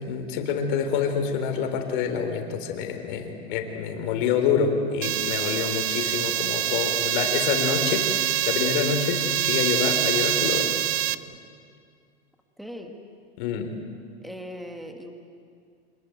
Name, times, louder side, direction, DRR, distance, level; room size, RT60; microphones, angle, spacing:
voice 1, 0.1-8.1 8.5-10.7 13.4-13.7, left 7 dB, 50° left, 5 dB, 3.8 m, -26 dB
sound 1, 5.0-11.2, right 13 dB, 70° right, 1.0 m, -25 dB
voice 2, 12.6-13.0 14.2-15.1, equal, ahead, 4 dB, 1.6 m, -39 dB
26.5 x 21.0 x 9.4 m, 2.2 s
supercardioid pair, 150°, 32 cm